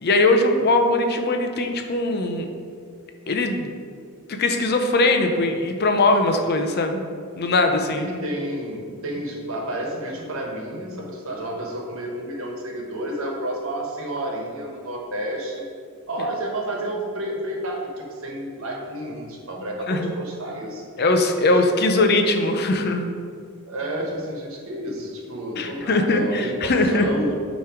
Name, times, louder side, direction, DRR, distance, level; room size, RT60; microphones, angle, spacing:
voice 1, 0.0-2.5 3.3-3.7 4.3-7.0 7.4-8.1 19.9-20.1 21.0-23.1 25.6-27.1, left 2 dB, 45° left, 5 dB, 0.6 m, -20 dB
voice 2, 7.9-15.6 16.1-20.8 21.4-21.6 22.0-22.1 23.7-26.5 26.9-27.4, right 1 dB, 65° right, 0 dB, 1.3 m, -30 dB
9.0 x 3.1 x 4.9 m, 2.2 s
head